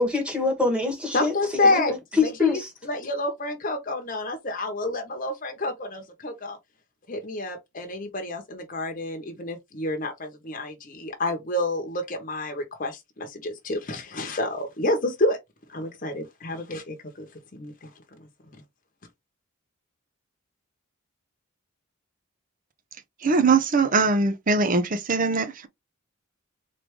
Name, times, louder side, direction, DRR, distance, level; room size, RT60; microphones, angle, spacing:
voice 1, 0.0-2.7, left 4 dB, 5° right, 1.4 m, -25 dB
voice 2, 1.1-6.6 7.1-15.4 15.7-17.3 17.5-18.6, left 2 dB, 40° left, 0.9 m, -29 dB
voice 3, 23.2-25.7, right 4 dB, 40° right, 0.6 m, -21 dB
3.7 x 3.3 x 3.5 m
head